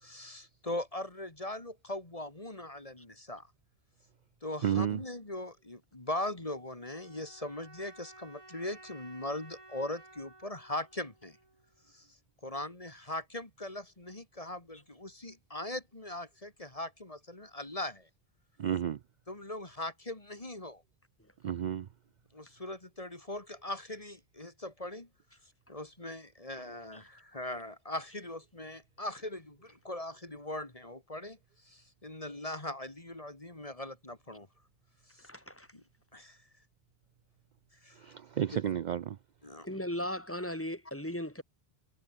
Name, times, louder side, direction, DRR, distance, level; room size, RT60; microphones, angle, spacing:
voice 1, 0.0-3.5 4.4-11.4 11.9-12.1 12.4-18.1 19.3-20.8 22.3-25.1 25.7-31.4 31.6-34.5 35.1-35.3 35.7-35.8 36.1-36.4 37.8-38.0 38.5-38.6 39.4-39.7, left 1 dB, 35° left, 2.6 m, -40 dB
voice 2, 4.6-5.0 18.6-19.0 21.4-21.9 38.0-39.2, right 9 dB, 55° right, 0.6 m, -31 dB
sound 1, 6.9-11.9, right 2 dB, 30° right, 2.4 m, -55 dB
voice 3, 35.2-35.7 39.6-41.4, left 1 dB, 10° left, 3.7 m, -37 dB
omnidirectional pair, 1.0 m